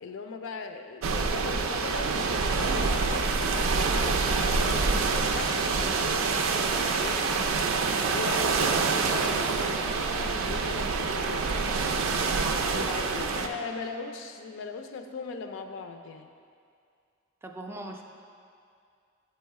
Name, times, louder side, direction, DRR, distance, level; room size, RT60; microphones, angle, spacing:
voice 1, 0.0-7.4 8.0-11.5 12.8-16.3, left 4 dB, 70° left, 6 dB, 0.4 m, -39 dB
sound 1, 1.0-13.5, right 4 dB, 85° right, 0.4 m, -26 dB
voice 2, 12.3-13.4 17.4-18.0, right 2 dB, 10° right, 2 dB, 0.3 m, -40 dB
7.8 x 3.1 x 4.6 m, 2.3 s
head